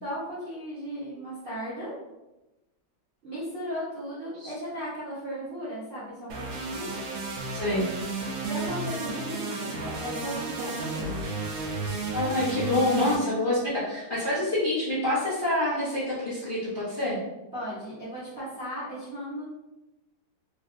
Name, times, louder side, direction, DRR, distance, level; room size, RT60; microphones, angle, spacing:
voice 1, 0.0-1.9 3.2-6.9 8.4-11.2 17.5-19.4, equal, 50° right, -10 dB, 0.6 m, -36 dB
sound 1, 6.3-13.2, right 3 dB, 80° right, 1.4 m, -33 dB
voice 2, 7.5-7.9 12.1-17.2, left 1 dB, 40° left, -11 dB, 0.7 m, -26 dB
3.3 x 2.4 x 2.5 m, 1.0 s
omnidirectional pair, 2.3 m